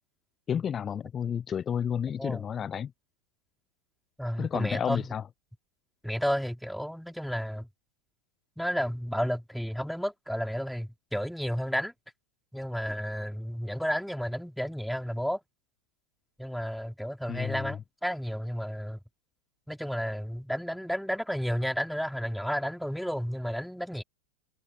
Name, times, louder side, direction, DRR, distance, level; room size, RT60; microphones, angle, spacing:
voice 1, 0.5-2.9 4.4-5.2 17.3-17.8, left 8 dB, 25° left, 0.8 m, -31 dB
voice 2, 4.2-5.1 6.0-7.7 8.6-11.9 12.5-15.4 16.4-19.0 19.7-24.0, equal, ahead, 3.7 m, -32 dB
figure-of-eight pair, 90°, 0 cm